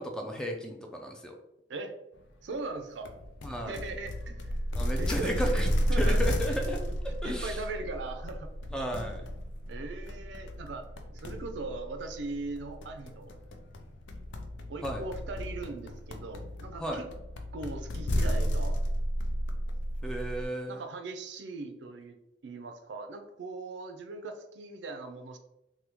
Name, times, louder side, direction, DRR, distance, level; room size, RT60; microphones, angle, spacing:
voice 1, 0.0-1.4 3.4-3.7 4.7-6.8 7.2-7.6 8.7-9.3 14.8-15.0 16.8-17.0 20.0-20.8, equal, 5° left, 2 dB, 0.3 m, -34 dB
voice 2, 2.4-3.1 3.7-4.5 5.0-5.6 5.9-6.2 6.9-7.0 7.2-8.5 9.7-10.9 11.1-13.3 14.7-17.1 17.5-18.8 20.7-22.2 22.4-25.4, right 3 dB, 70° right, 6 dB, 0.4 m, -39 dB
sound 1, 3.0-20.5, equal, 80° left, 0.4 m, -33 dB
3.4 x 2.2 x 2.9 m, 0.88 s
head